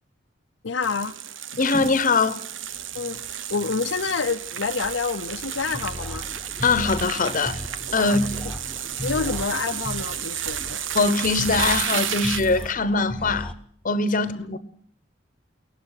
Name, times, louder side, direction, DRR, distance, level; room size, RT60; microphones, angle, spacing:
voice 1, 0.6-1.2 1.5-1.6 2.9-6.3 8.0-8.2 9.0-10.8, left 5 dB, 85° left, 0.8 m, -28 dB
sound 1, 0.8-12.7, right 9 dB, 90° right, 0.9 m, -32 dB
voice 2, 1.6-2.4 6.6-7.6 7.9-8.2 10.9-13.5 13.8-14.6, left 4 dB, 45° left, 1.0 m, -22 dB
sound 2, 5.3-13.5, left 1 dB, 5° left, 1.2 m, -36 dB
22.5 x 18.0 x 6.6 m
head